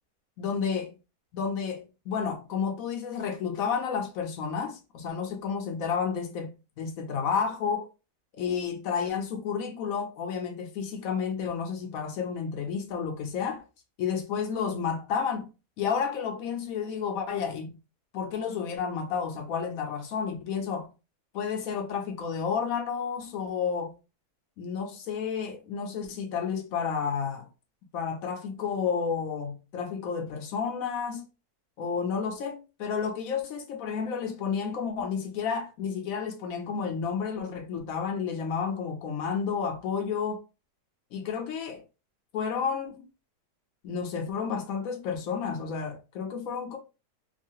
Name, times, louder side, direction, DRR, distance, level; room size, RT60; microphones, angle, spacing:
voice 1, 0.4-0.9 1.3-6.5 6.8-7.9 8.3-13.6 14.0-15.5 15.8-17.7 18.1-20.9 21.3-23.9 24.6-27.5 27.9-31.2 31.8-40.4 41.1-41.8 42.3-43.0 43.8-46.8, left 6 dB, 70° left, 0.9 m, -31 dB
3.0 x 2.2 x 2.6 m
omnidirectional pair, 1.7 m